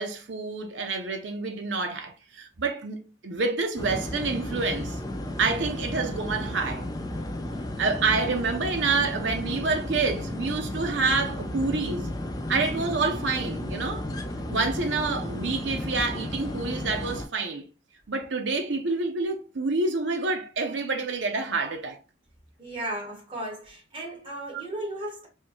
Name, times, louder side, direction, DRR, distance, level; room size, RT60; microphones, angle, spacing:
voice 1, 0.0-5.0 5.4-6.9 7.8-12.1 12.5-14.1 14.5-17.6 18.1-22.0 24.5-24.6, right 4 dB, 70° right, 0.6 m, -28 dB
sound 1, 3.8-17.2, left 1 dB, 20° left, 0.4 m, -33 dB
voice 2, 22.6-25.3, right 1 dB, 30° right, 1.5 m, -35 dB
4.4 x 2.2 x 3.0 m
head